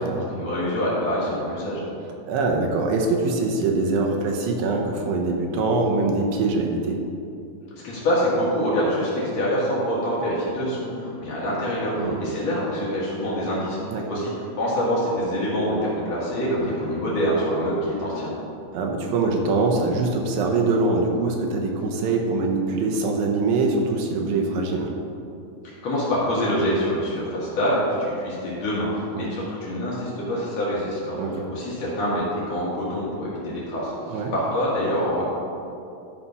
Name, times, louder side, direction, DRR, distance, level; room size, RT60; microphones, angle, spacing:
voice 1, 0.0-1.8 7.8-13.8 14.1-14.3 14.6-18.3 25.6-28.9 29.1-35.3, equal, 55° left, -7 dB, 2.5 m, -25 dB
voice 2, 2.3-7.0 12.0-12.2 13.9-14.1 16.6-16.8 18.7-24.9 29.1-29.3 31.2-31.5 34.1-34.3, right 3 dB, 75° right, 1 dB, 2.5 m, -23 dB
11.5 x 4.2 x 5.4 m, 2.6 s
omnidirectional pair, 4.2 m